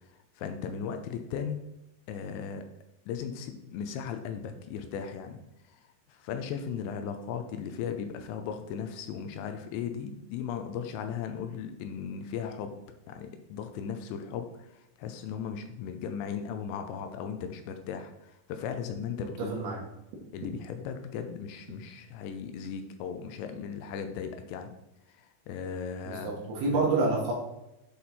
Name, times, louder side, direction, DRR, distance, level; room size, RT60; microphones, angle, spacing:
voice 1, 0.4-1.6 2.1-2.6 3.1-5.4 5.7-5.8 6.1-12.8 13.1-19.5 20.3-24.7 25.1-26.4 26.7-26.9, left 7 dB, 85° left, 7 dB, 2.8 m, -37 dB
voice 2, 19.4-19.8 26.1-27.3, right 3 dB, 70° right, -2 dB, 3.0 m, -28 dB
8.3 x 4.2 x 4.2 m, 0.88 s
omnidirectional pair, 5.3 m